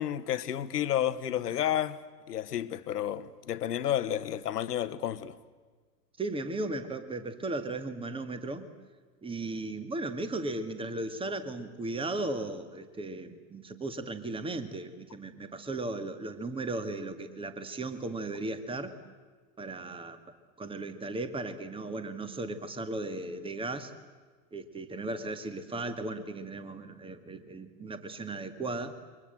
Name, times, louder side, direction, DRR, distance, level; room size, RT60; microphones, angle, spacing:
voice 1, 0.0-2.0 2.3-5.4, left 11 dB, 70° left, 1.6 m, -31 dB
voice 2, 6.2-8.7 9.2-19.0 19.6-20.2 20.6-23.9 24.5-29.0, right 2 dB, 10° right, 2.0 m, -36 dB
28.0 x 24.0 x 7.8 m
hypercardioid pair, 105°, 49 cm